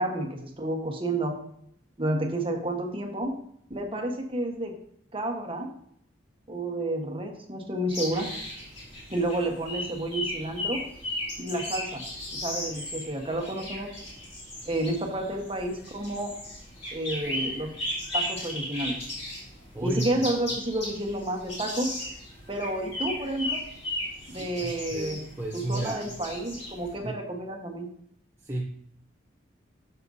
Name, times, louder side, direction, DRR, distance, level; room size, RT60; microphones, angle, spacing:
voice 1, 0.0-1.3 2.0-3.3 3.7-4.7 5.1-5.7 6.5-8.3 9.1-10.8 11.4-12.0 12.3-13.9 14.6-16.3 16.9-17.7 18.1-19.1 19.8-21.9 22.5-23.6 24.3-25.2 25.5-27.9, right 1 dB, 30° right, 3 dB, 1.3 m, -30 dB
sound 1, 7.9-26.9, left 1 dB, 35° left, 3.3 m, -36 dB
voice 2, 19.7-20.1 24.2-26.1 27.0-27.2 28.4-28.6, right 1 dB, 15° right, -2 dB, 0.7 m, -33 dB
11.0 x 6.7 x 2.7 m, 0.67 s
head